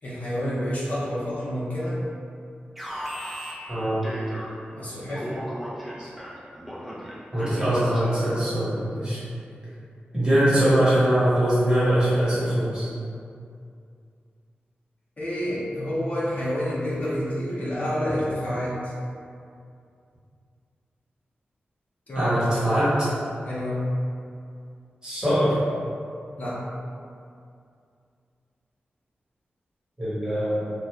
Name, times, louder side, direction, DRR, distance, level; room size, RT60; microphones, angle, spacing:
voice 1, 0.0-2.0 4.7-5.3 15.2-18.9 22.1-22.4 23.4-23.8 26.4-26.6, equal, 45° left, -9 dB, 0.6 m, -28 dB
Alarm, 2.8-4.8 5.1-8.4, equal, 5° right, 0.5 m, -37 dB
voice 2, 3.7-4.0 6.0-6.1 7.3-9.2 10.1-12.9 22.2-22.9 25.0-25.6 30.0-30.7, right 1 dB, 20° right, -11 dB, 1.1 m, -22 dB
2.5 x 2.2 x 3.1 m, 2.4 s
wide cardioid pair, 100°, 4 cm